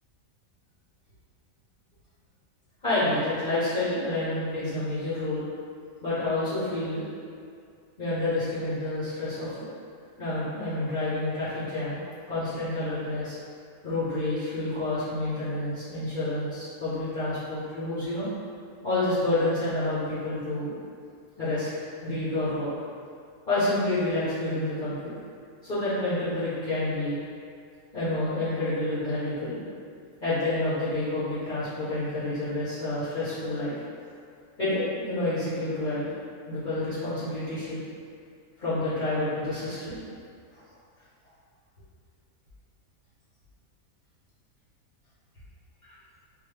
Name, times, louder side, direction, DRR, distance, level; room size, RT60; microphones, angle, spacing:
voice 1, 2.8-5.4 6.0-7.0 8.0-9.5 10.2-12.0 12.3-13.3 13.8-18.3 18.8-20.7 21.4-21.7 22.0-22.7 23.5-25.1 25.6-27.2 27.9-29.6 30.2-33.8 34.6-36.1 36.5-37.8 38.6-40.0 40.5-40.6, left 2 dB, 35° left, -14 dB, 1.2 m, -28 dB
3.8 x 2.9 x 3.3 m, 2.3 s
omnidirectional pair, 1.5 m